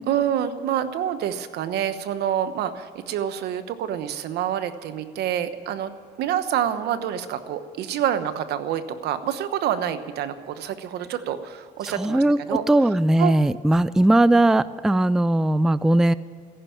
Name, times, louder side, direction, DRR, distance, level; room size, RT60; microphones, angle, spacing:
voice 1, 0.1-5.9 6.2-12.6 13.2-13.3, right 10 dB, 75° right, 11 dB, 1.1 m, -27 dB
voice 2, 11.8-16.1, right 1 dB, 5° right, 17 dB, 0.3 m, -19 dB
14.5 x 11.5 x 8.7 m, 2.1 s
cardioid pair, 110°, 17 cm